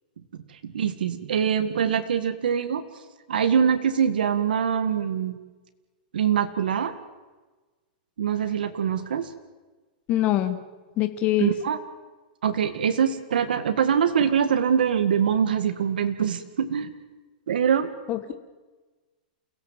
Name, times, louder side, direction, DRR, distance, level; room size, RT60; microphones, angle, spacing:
voice 1, 0.5-2.9 3.3-5.4 6.1-6.9 8.2-9.3 11.4-11.8 12.4-17.0 17.5-17.9, right 8 dB, 90° right, 9 dB, 1.9 m, -24 dB
voice 2, 10.1-10.6 11.0-11.5 18.1-18.4, left 13 dB, 30° left, 9 dB, 1.6 m, -23 dB
29.0 x 17.0 x 7.5 m, 1.3 s
supercardioid pair, 155°, 5 cm